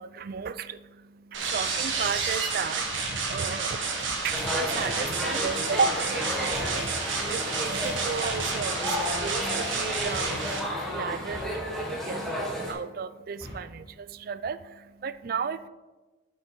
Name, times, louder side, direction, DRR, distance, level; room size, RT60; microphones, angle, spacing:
voice 1, 0.0-15.7, right 5 dB, 45° right, 14 dB, 0.3 m, -34 dB
sound 1, 1.3-10.6, right 4 dB, 70° right, 1.4 m, -30 dB
sound 2, 3.9-4.5 6.4-7.1 9.0-9.5 11.3-12.1 13.2-13.9, equal, 15° right, 1.5 m, -45 dB
sound 3, 4.3-12.7, left 1 dB, ahead, 1.2 m, -32 dB
8.4 x 5.3 x 4.6 m, 1.2 s
head